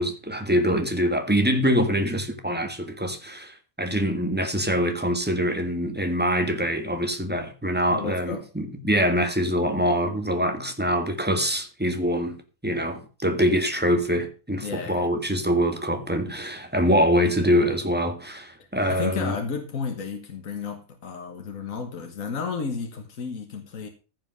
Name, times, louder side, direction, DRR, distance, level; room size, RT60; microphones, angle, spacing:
voice 1, 0.0-12.4 12.6-19.4, equal, 5° right, 1.7 m, -24 dB
voice 2, 7.9-8.5 14.6-15.1 18.9-23.9, left 5 dB, 70° left, 1.8 m, -32 dB
15.0 x 5.4 x 6.4 m
omnidirectional pair, 1.4 m